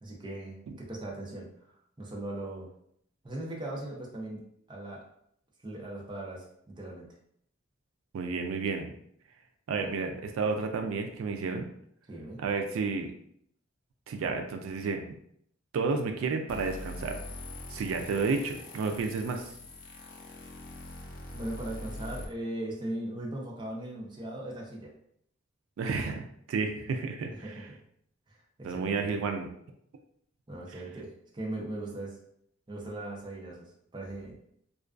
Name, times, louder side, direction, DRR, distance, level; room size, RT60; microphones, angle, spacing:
voice 1, 0.0-2.7 3.2-4.4 4.7-5.0 5.6-7.1 9.8-10.0 12.1-12.4 21.3-24.9 27.4-27.8 28.3-29.1 30.5-32.2 32.7-34.4, right 1 dB, 25° right, -2 dB, 0.5 m, -39 dB
voice 2, 8.1-8.9 9.7-11.7 12.4-13.1 14.1-15.0 15.7-17.2 17.7-19.5 25.8-27.6 28.6-29.5, right 4 dB, 85° right, 4 dB, 0.3 m, -31 dB
sound 1, 16.5-22.2, left 1 dB, 45° left, 0.4 m, -43 dB
2.3 x 2.2 x 2.3 m, 0.69 s
head